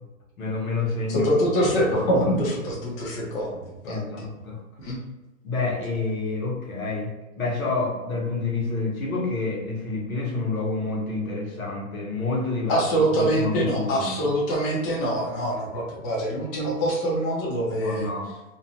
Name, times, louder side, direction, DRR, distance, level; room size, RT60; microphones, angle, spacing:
voice 1, 0.4-1.3 1.6-1.7 3.8-4.6 5.4-14.2 17.8-18.3, left 3 dB, 90° left, -2 dB, 1.1 m, -28 dB
voice 2, 1.1-4.0 4.8-5.0 12.7-18.1, right 1 dB, 20° left, -4 dB, 0.6 m, -24 dB
2.6 x 2.2 x 2.8 m, 1.1 s
hypercardioid pair, 140°, 41 cm